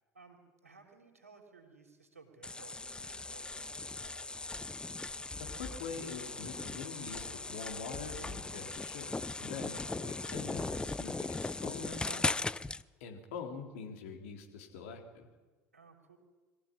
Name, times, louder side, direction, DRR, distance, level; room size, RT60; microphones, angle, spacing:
voice 1, 0.1-4.3 15.7-16.2, right 4 dB, 80° right, 3 dB, 3.4 m, -58 dB
sound 1, 2.4-12.8, left 3 dB, 10° left, 0.6 m, -38 dB
voice 2, 5.4-12.2 13.0-15.3, left 5 dB, 60° left, 3 dB, 3.6 m, -44 dB
22.5 x 15.0 x 9.9 m, 1.3 s
figure-of-eight pair, 65°, 8 cm